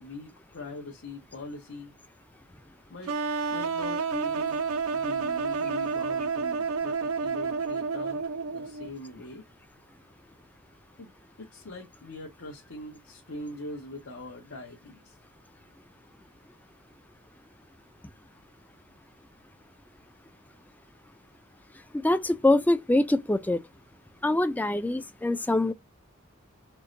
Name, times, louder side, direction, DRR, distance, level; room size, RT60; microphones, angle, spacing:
voice 1, 0.0-1.9 2.9-3.2 3.5-4.6 4.9-9.4 11.0-11.1 11.4-15.2, left 2 dB, 75° left, 1.0 m, -42 dB
sound 1, 3.1-8.9, right 5 dB, 85° right, 0.5 m, -30 dB
voice 2, 21.9-23.6 24.2-25.7, left 2 dB, 10° left, 0.3 m, -24 dB
4.5 x 2.2 x 2.5 m
head